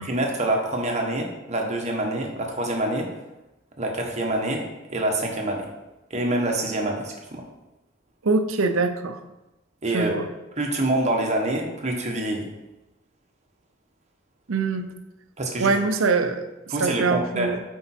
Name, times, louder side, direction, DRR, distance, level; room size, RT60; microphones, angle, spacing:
voice 1, 0.0-3.1 3.8-5.7 6.1-7.4 9.8-10.2 10.6-12.5 15.4-15.7 16.7-17.5, right 1 dB, 35° right, 1 dB, 1.3 m, -26 dB
voice 2, 8.2-9.2 9.9-10.3 14.5-14.9 15.6-16.5 16.8-17.6, right 4 dB, 80° right, 8 dB, 0.7 m, -23 dB
9.0 x 4.6 x 4.4 m, 1.0 s
head